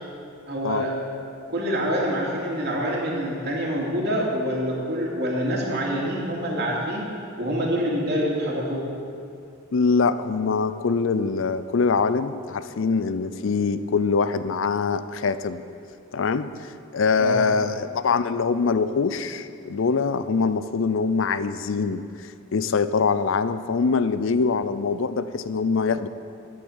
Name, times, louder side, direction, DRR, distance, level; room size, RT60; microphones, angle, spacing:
voice 1, 0.5-0.9 1.5-8.8 17.2-17.6, equal, 55° right, -3 dB, 2.8 m, -26 dB
voice 2, 9.7-15.6 16.1-22.1 22.5-26.1, left 5 dB, 70° left, 13 dB, 0.5 m, -23 dB
11.0 x 8.7 x 8.1 m, 2.4 s
head